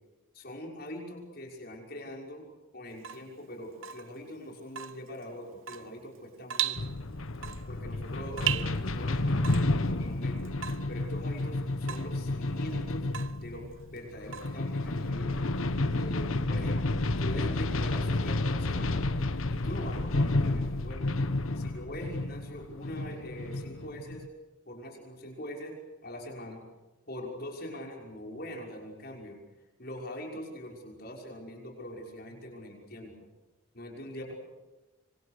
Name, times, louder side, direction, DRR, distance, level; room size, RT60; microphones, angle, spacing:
voice 1, 0.3-2.4 2.7-6.9 7.7-10.6 10.9-13.1 13.4-19.0 19.5-21.0 21.6-24.2 24.7-25.8 26.0-26.6 27.1-29.4 29.8-33.1 33.7-34.3, left 1 dB, 50° left, 1 dB, 6.1 m, -43 dB
Water tap faucet / Drip, 2.9-15.1, right 11 dB, 75° right, 0.8 m, -39 dB
sound 1, 6.7-24.3, left 2 dB, 85° left, 1.3 m, -31 dB
26.0 x 26.0 x 6.7 m, 1.1 s
head